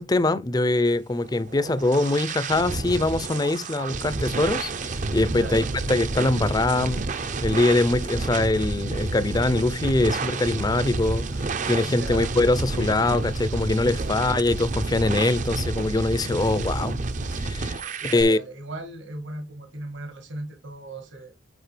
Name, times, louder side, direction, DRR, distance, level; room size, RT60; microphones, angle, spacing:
voice 1, 0.0-7.1 7.4-17.0 17.4-18.4, left 2 dB, 20° left, 0.5 m, -23 dB
sound 1, 1.3-18.2, right 3 dB, 40° right, 0.5 m, -30 dB
voice 2, 5.3-5.7 11.8-12.3 13.9-14.2 18.0-21.3, right 2 dB, 65° right, 1.5 m, -37 dB
8.1 x 4.8 x 3.3 m
head